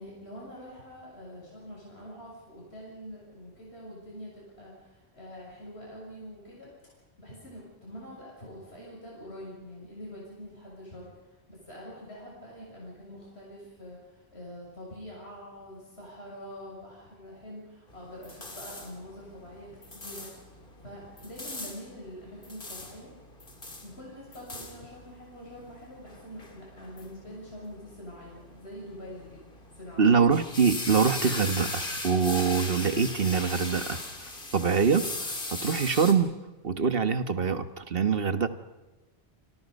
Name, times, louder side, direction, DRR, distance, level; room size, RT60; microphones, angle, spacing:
voice 1, 0.0-6.7 7.2-20.4 20.8-23.1 23.8-30.3, equal, 75° left, -4 dB, 7.4 m, -45 dB
sound 1, 17.9-36.1, left 2 dB, 55° left, 3.0 m, -39 dB
voice 2, 30.0-34.0 34.5-36.3 36.6-38.5, right 6 dB, 60° right, 10 dB, 1.5 m, -24 dB
28.5 x 25.0 x 5.4 m, 1.1 s
omnidirectional pair, 1.1 m